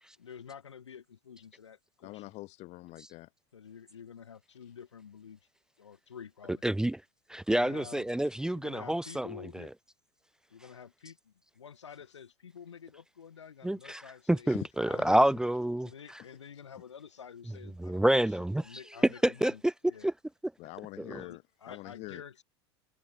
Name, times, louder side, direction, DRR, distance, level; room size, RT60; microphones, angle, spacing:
voice 1, 0.2-2.3 3.5-5.4 5.8-6.6 7.5-8.1 8.5-9.7 10.5-14.5 14.8-15.4 15.8-18.3 18.6-19.6 19.9-20.1 21.2-22.4, left 7 dB, 85° left, 5.0 m, -49 dB
voice 2, 2.0-3.3 14.5-14.6 15.0-15.1 16.2-16.4 20.6-21.4 21.7-22.2, left 20 dB, 50° left, 1.5 m, -44 dB
voice 3, 6.6-7.0 7.3-9.3 9.5-9.7 13.6-16.2 17.8-19.7 20.0-20.1 21.0-21.2, right 1 dB, 5° right, 0.7 m, -28 dB
hypercardioid pair, 85°, 15 cm